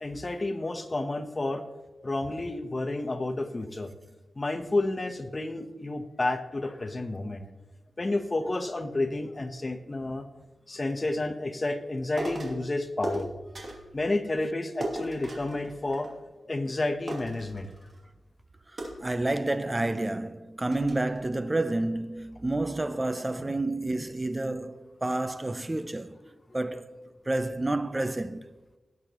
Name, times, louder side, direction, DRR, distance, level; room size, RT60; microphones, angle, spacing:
voice 1, 0.0-1.6 2.0-3.9 4.4-7.5 8.0-10.2 10.7-13.3 13.9-16.1 16.5-17.7 23.4-23.5 26.2-26.3, left 2 dB, 30° left, 1.0 m, -30 dB
sound 1, 12.2-12.6 13.0-13.9 14.8-16.4 16.7-16.8 17.1-18.1 18.8-19.7 20.2-20.3 20.7-21.2, right 1 dB, 45° right, 2.6 m, -37 dB
voice 2, 19.0-26.1 26.5-26.9 27.3-28.5, right 2 dB, 20° right, 0.6 m, -29 dB
18.0 x 8.1 x 3.0 m
wide cardioid pair, 115°, 0 cm